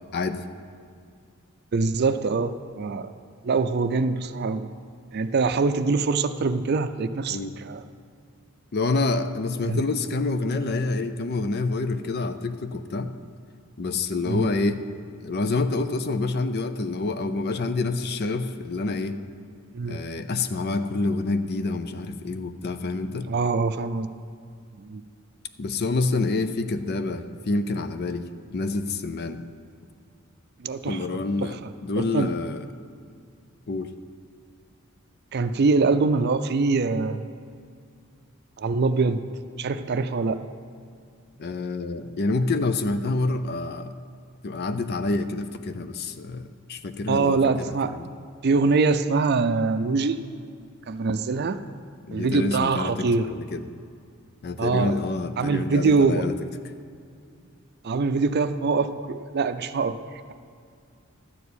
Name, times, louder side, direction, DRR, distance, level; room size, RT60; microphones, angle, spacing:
voice 1, 1.7-3.1 3.4-4.7 5.1-7.8 9.6-9.8 14.3-14.5 19.7-20.0 23.3-24.1 24.8-25.0 30.6-31.0 31.4-31.7 32.1-32.3 35.3-37.2 38.6-39.2 39.6-40.4 47.1-47.9 48.4-50.2 50.9-51.6 52.1-53.3 54.6-54.9 55.4-56.2 57.8-60.0, right 4 dB, 50° right, 10 dB, 0.5 m, -23 dB
voice 2, 8.7-13.1 13.8-14.8 15.2-19.2 19.9-23.3 25.6-29.4 30.9-32.7 33.7-33.9 41.4-43.9 44.4-48.1 52.1-53.6 54.4-56.3, left 3 dB, 50° left, 10 dB, 0.5 m, -27 dB
12.0 x 4.7 x 8.3 m, 2.2 s
head